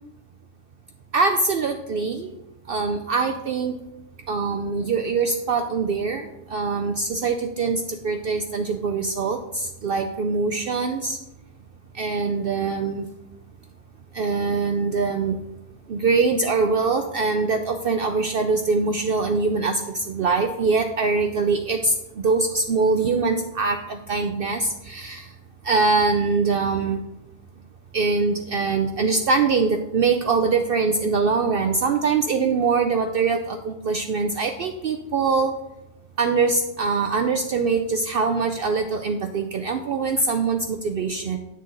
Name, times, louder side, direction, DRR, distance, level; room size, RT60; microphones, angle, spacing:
voice 1, 1.1-2.4 2.7-3.7 4.3-11.2 11.9-13.1 14.1-15.4 15.9-25.3 25.6-27.0 27.9-35.5 36.2-41.4, right 4 dB, 60° right, 5 dB, 0.7 m, -23 dB
9.0 x 6.6 x 3.8 m, 0.89 s
omnidirectional pair, 1.2 m